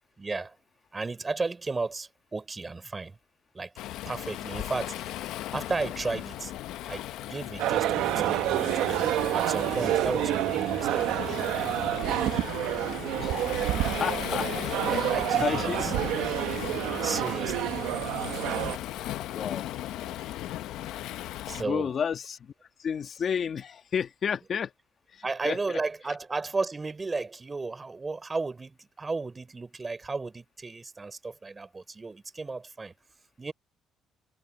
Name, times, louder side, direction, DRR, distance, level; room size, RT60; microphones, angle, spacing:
voice 1, 0.2-0.6 0.9-3.2 3.5-3.7 4.1-5.2 5.5-6.5 6.9-9.1 9.3-11.4 14.9-15.9 17.0-17.7 21.0-21.9 25.2-32.9 33.4-33.5, right 3 dB, 20° right, 3.9 m, -34 dB
Waves surf, 3.8-21.6, left 14 dB, 85° left, 0.7 m, -36 dB
sound 1, 7.6-18.8, right 14 dB, 90° right, 1.0 m, -28 dB
voice 2, 13.2-13.7 14.0-14.5 14.9-15.8 19.3-19.7 21.5-22.5 22.8-24.7 25.1-25.8, left 7 dB, 45° left, 1.4 m, -32 dB
cardioid pair, 120°, 0 cm